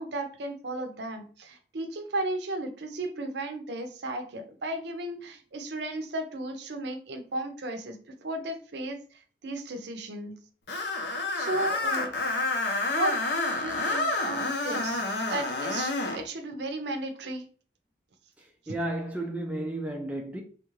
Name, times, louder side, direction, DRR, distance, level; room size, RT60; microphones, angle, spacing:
voice 1, 0.0-8.0 8.2-10.4 11.3-12.1 12.8-13.2 13.5-17.4, right 2 dB, 65° right, 0.6 m, -34 dB
Screech, 10.7-16.2, left 2 dB, 60° left, 0.6 m, -29 dB
voice 2, 18.4-20.4, right 1 dB, 5° right, 0.3 m, -33 dB
3.4 x 2.4 x 3.1 m
head